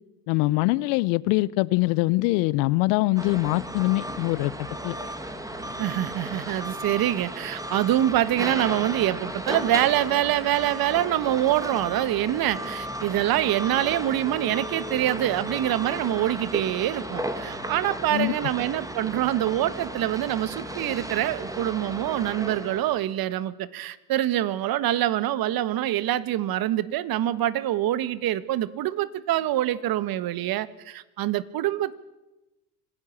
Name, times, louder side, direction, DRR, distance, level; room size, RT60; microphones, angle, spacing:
voice 1, 0.3-5.0 18.1-18.3, left 21 dB, 65° left, 22 dB, 0.8 m, -23 dB
sound 1, 3.2-23.0, right 1 dB, 5° right, 2.5 m, -34 dB
voice 2, 5.8-31.9, right 13 dB, 50° right, 16 dB, 1.4 m, -25 dB
26.0 x 16.0 x 7.3 m, 1.0 s
hypercardioid pair, 80°, 46 cm